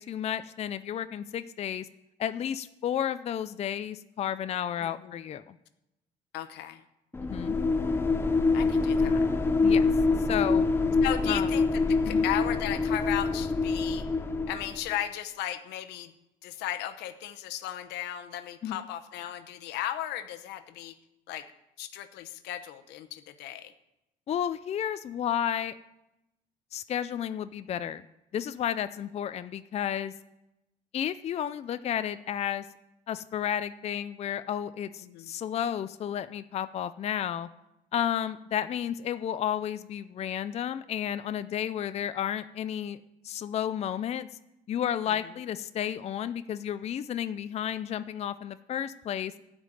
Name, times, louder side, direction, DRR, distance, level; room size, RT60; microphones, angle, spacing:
voice 1, 0.0-1.9 2.2-5.6 7.2-7.6 9.6-9.9 10.3-10.6 11.3-11.5 12.0-12.3 18.6-18.8 24.3-25.8 26.7-28.0 28.3-30.1 30.9-32.7 33.1-37.5 37.9-43.0 43.2-44.3 44.7-49.3, left 9 dB, 40° left, 12 dB, 0.4 m, -32 dB
voice 2, 4.8-5.1 6.3-6.8 8.5-9.2 11.0-14.0 14.5-16.1 16.4-20.9 21.3-21.5 21.8-23.7 35.0-35.3 45.1-45.2, left 12 dB, 85° left, 9 dB, 0.9 m, -36 dB
sound 1, 7.1-14.9, left 3 dB, 15° left, 0.8 m, -25 dB
12.5 x 5.2 x 9.0 m, 0.90 s
cardioid pair, 110°, 17 cm